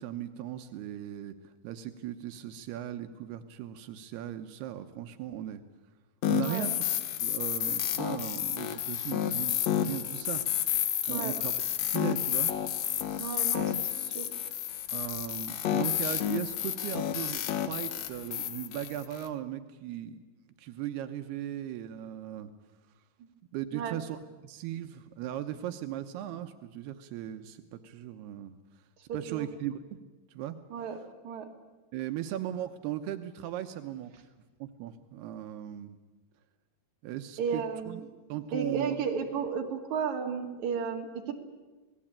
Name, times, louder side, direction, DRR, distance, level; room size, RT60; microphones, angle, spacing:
voice 1, 0.0-5.6 6.3-6.9 7.2-10.6 11.1-11.5 11.9-12.5 14.9-20.2 20.6-22.5 23.5-24.2 24.4-28.5 29.1-30.0 30.3-30.6 31.9-34.1 34.6-36.0 37.0-38.0 38.3-39.0, right 11 dB, 85° right, 7 dB, 3.0 m, -38 dB
sound 1, 6.2-19.3, left 10 dB, 80° left, 1.5 m, -31 dB
voice 2, 11.1-11.4 13.2-14.3 23.2-23.3 23.7-24.0 29.3-29.5 30.7-31.5 37.4-38.1 38.5-41.3, right 6 dB, 50° right, 1 dB, 3.5 m, -34 dB
27.0 x 19.5 x 8.8 m, 1.2 s
omnidirectional pair, 4.5 m